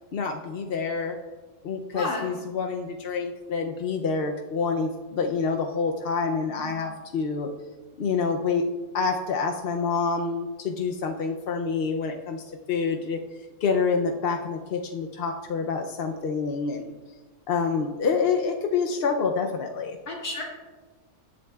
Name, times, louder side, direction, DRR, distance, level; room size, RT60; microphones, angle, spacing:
voice 1, 0.1-1.2 1.6-7.5 8.0-8.7 8.9-13.2 13.6-16.9 17.5-20.0, left 5 dB, 55° left, 3 dB, 0.7 m, -27 dB
voice 2, 1.9-2.3 6.5-6.7 20.1-20.4, left 2 dB, 75° left, -3 dB, 2.7 m, -32 dB
21.0 x 7.6 x 2.3 m, 1.3 s
omnidirectional pair, 1.6 m